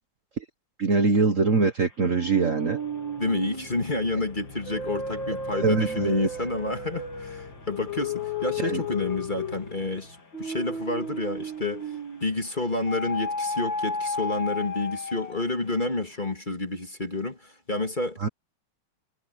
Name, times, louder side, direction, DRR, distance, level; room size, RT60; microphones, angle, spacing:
voice 1, 0.8-2.8 5.6-6.3 8.6-8.8 18.2-18.3, right 4 dB, 45° right, 1.4 m, -23 dB
sound 1, 2.1-12.3 12.9-15.6, left 2 dB, 60° left, 4.3 m, -33 dB
voice 2, 3.2-18.3, left 2 dB, 25° left, 2.1 m, -30 dB
omnidirectional pair, 2.3 m